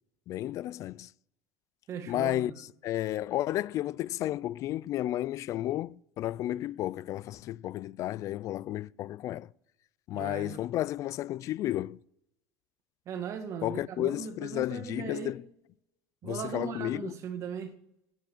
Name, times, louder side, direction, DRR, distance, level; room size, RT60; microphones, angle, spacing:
voice 1, 0.3-1.1 2.1-9.5 10.1-12.0 13.6-15.4 16.2-17.1, left 14 dB, 45° left, 0.4 m, -32 dB
voice 2, 1.9-2.6 10.1-10.6 13.0-15.3 16.2-17.7, right 7 dB, 45° right, 1.8 m, -38 dB
10.0 x 9.1 x 7.3 m
supercardioid pair, 125°, 7 cm